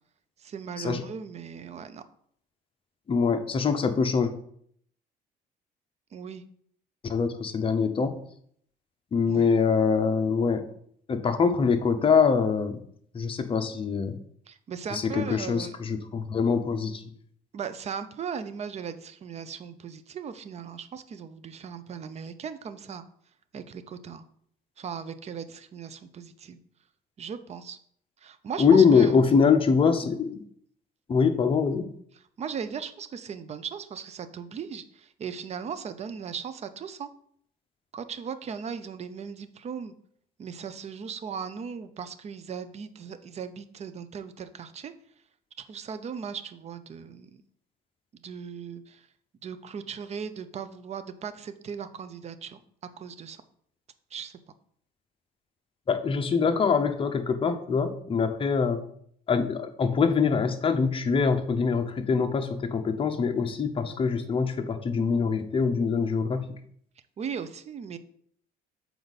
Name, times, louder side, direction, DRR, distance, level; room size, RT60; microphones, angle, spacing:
voice 1, 0.4-2.0 6.1-6.4 9.3-9.5 14.5-15.7 17.5-23.0 23.5-24.2 24.8-26.6 27.2-27.8 28.2-29.3 32.4-37.1 37.9-39.9 40.4-44.9 45.6-47.4 48.2-49.1 49.4-52.6 53.0-53.4 54.1-54.3 67.2-68.0, right 6 dB, 40° right, 12 dB, 0.6 m, -38 dB
voice 2, 3.1-4.3 7.0-8.2 9.1-10.7 11.1-12.8 13.1-14.2 14.9-17.0 28.6-30.4 31.1-31.9 55.9-58.8 59.3-66.5, left 5 dB, 30° left, 7 dB, 0.8 m, -24 dB
6.8 x 4.5 x 4.1 m, 0.65 s
cardioid pair, 110°, 17 cm